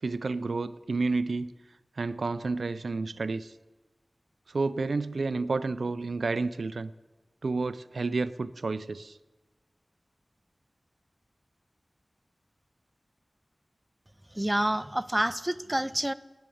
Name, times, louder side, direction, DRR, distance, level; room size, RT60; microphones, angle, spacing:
voice 1, 0.0-1.5 2.0-3.5 4.5-6.9 7.4-9.2, right 3 dB, 90° right, 14 dB, 0.4 m, -30 dB
voice 2, 14.3-16.1, right 1 dB, 15° right, 14 dB, 0.4 m, -28 dB
11.0 x 8.1 x 8.5 m, 1.2 s
wide cardioid pair, 50°, 0 cm